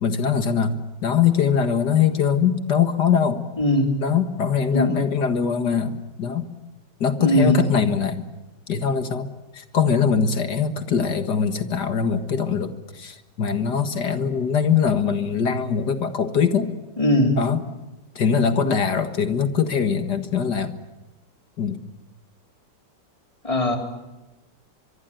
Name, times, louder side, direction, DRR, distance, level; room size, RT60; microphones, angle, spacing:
voice 1, 0.0-3.4 4.0-6.4 7.0-8.2 8.7-16.7 17.4-17.6 18.2-20.8 21.6-21.8, left 7 dB, 65° left, 9 dB, 2.2 m, -22 dB
voice 2, 3.6-3.9 4.7-5.0 7.2-7.6 17.0-17.4 23.4-23.8, left 1 dB, 15° left, 4 dB, 4.1 m, -19 dB
24.5 x 23.5 x 9.2 m, 1.0 s
omnidirectional pair, 2.0 m